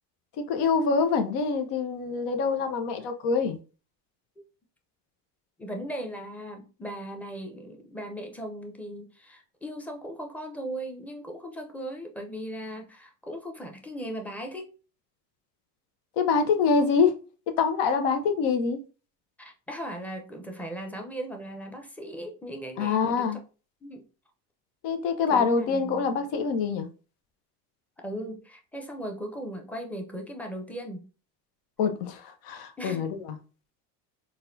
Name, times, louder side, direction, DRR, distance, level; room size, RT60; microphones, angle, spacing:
voice 1, 0.5-3.6 16.2-17.2 17.5-18.8 22.8-23.4 24.8-26.9 31.8-33.4, left 5 dB, 55° left, 0.8 m, -25 dB
voice 2, 5.6-14.7 19.4-23.3 23.8-24.1 25.3-26.3 28.0-31.1 32.8-33.1, right 1 dB, 5° left, 0.7 m, -38 dB
4.0 x 2.3 x 2.7 m
hypercardioid pair, 70°, 49 cm